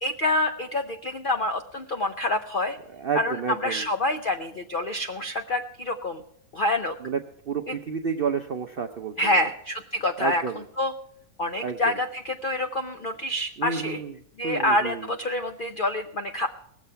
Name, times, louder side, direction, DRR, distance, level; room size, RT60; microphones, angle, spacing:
voice 1, 0.0-2.8 3.1-6.2 6.5-6.9 7.7-7.8 9.2-10.4 10.8-10.9 11.4-14.0 14.4-16.5, left 1 dB, 75° left, 7 dB, 0.4 m, -27 dB
voice 2, 2.9-3.9 7.0-9.5 10.2-10.6 11.6-12.0 13.6-14.2 14.4-15.1, right 6 dB, 70° right, 7 dB, 0.5 m, -30 dB
18.5 x 7.2 x 5.6 m, 0.71 s
omnidirectional pair, 1.8 m